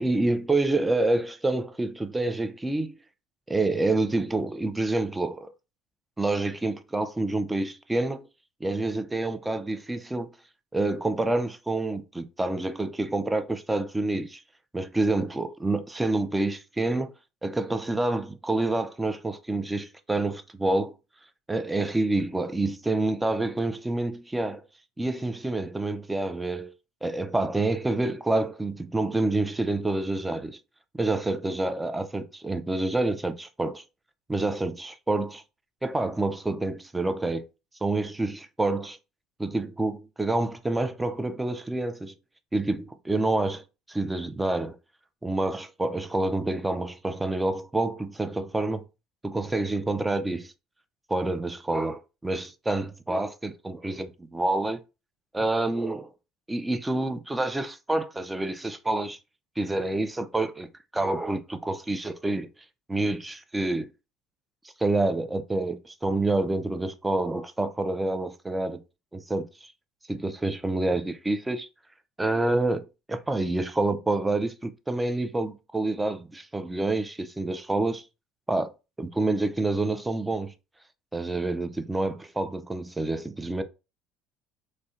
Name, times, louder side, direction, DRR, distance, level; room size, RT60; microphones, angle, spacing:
voice 1, 0.0-3.0 3.5-5.5 6.2-8.2 8.6-10.3 10.7-14.4 14.7-17.1 17.4-20.9 21.5-24.6 25.0-26.7 27.0-30.6 30.9-33.8 34.3-35.4 35.8-37.4 37.8-39.0 39.4-42.1 42.5-43.6 43.9-44.8 45.2-48.8 49.2-50.5 51.1-54.8 55.3-56.1 56.5-59.2 59.6-60.7 60.9-62.5 62.9-63.9 64.8-68.8 69.1-69.7 70.1-71.7 72.2-72.8 73.1-78.0 78.5-78.7 79.0-80.5 81.1-83.6, right 2 dB, 10° right, 0.3 m, -27 dB
2.6 x 2.1 x 2.2 m
supercardioid pair, 80°, 0 cm